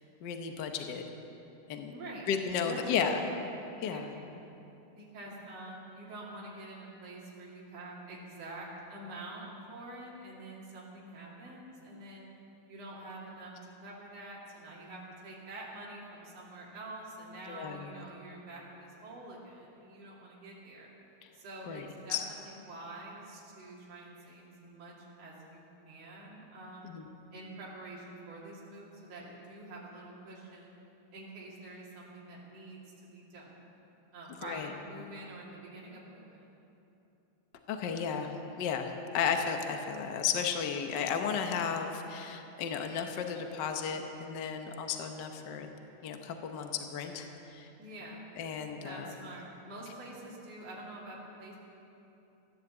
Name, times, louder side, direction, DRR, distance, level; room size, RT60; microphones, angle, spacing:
voice 1, 0.2-1.0 1.7-1.9 2.3-3.2 3.8-4.1 17.5-18.0 21.7-22.2 26.8-27.1 34.4-34.7 35.0-35.1 37.7-45.7 46.0-47.7 48.4-49.1, left 7 dB, 75° left, 5 dB, 1.0 m, -34 dB
voice 2, 1.9-2.3 2.6-3.2 3.8-4.1 4.9-12.3 12.7-13.6 13.8-20.9 21.3-26.9 27.3-30.7 31.1-33.7 34.1-36.5 47.8-48.2 48.8-51.6, right 2 dB, 60° right, -5 dB, 3.8 m, -46 dB
16.0 x 10.5 x 8.0 m, 3.0 s
omnidirectional pair, 3.4 m